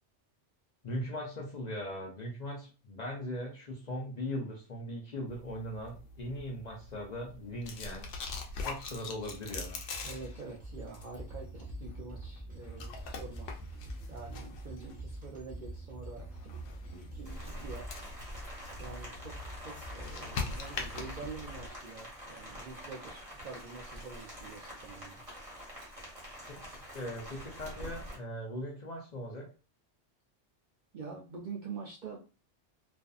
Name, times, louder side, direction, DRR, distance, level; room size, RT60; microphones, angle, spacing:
voice 1, 0.8-8.1 8.6-9.8 26.5-26.6 26.9-29.5, equal, 50° left, -1 dB, 0.5 m, -39 dB
sound 1, 5.3-21.7, left 4 dB, 85° left, 0.9 m, -44 dB
sound 2, 9.2-21.2, right 1 dB, 10° right, 0.9 m, -46 dB
voice 2, 10.0-16.5 16.9-17.9 18.8-25.2 30.9-32.2, right 4 dB, 60° right, -2 dB, 0.5 m, -46 dB
Rain, 17.2-28.2, equal, 30° right, 1.0 m, -46 dB
2.5 x 2.4 x 2.3 m, 0.34 s
omnidirectional pair, 1.2 m